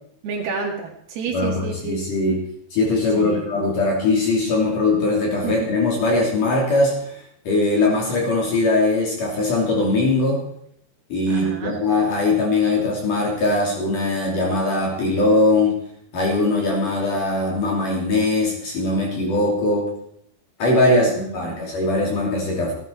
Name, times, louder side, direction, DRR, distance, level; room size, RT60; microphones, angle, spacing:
voice 1, 0.2-2.0 3.2-3.4 5.4-5.5 11.3-11.8 21.0-21.7, right 5 dB, 70° right, 2 dB, 3.5 m, -30 dB
voice 2, 1.3-2.4 2.7-7.2 7.5-10.5 11.1-15.8 16.1-19.9 20.6-22.7, left 2 dB, 55° left, -1 dB, 4.3 m, -20 dB
16.5 x 12.5 x 4.6 m, 0.70 s
omnidirectional pair, 4.7 m